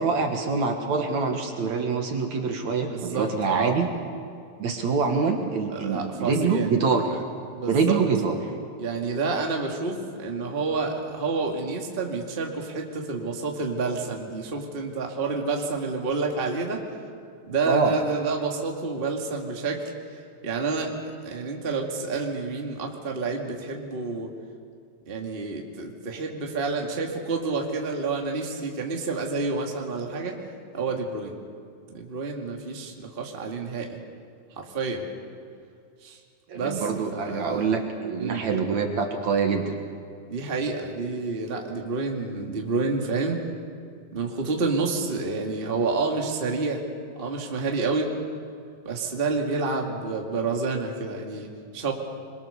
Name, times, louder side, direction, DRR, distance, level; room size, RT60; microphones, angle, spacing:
voice 1, 0.0-3.9 4.6-7.2 7.7-8.4 17.7-18.0 36.5-39.8, right 5 dB, 60° right, 3 dB, 2.6 m, -25 dB
voice 2, 2.9-3.7 5.7-6.7 7.5-8.0 8.8-16.8 17.4-19.8 20.4-24.3 25.1-30.4 30.7-31.4 31.9-34.0 34.5-35.1 36.0-36.2 36.5-37.8 38.2-38.4 40.3-43.4 44.1-46.8 47.1-48.1 48.8-51.9, right 4 dB, 20° right, 1 dB, 1.7 m, -29 dB
26.5 x 22.5 x 6.9 m, 2.3 s
omnidirectional pair, 4.1 m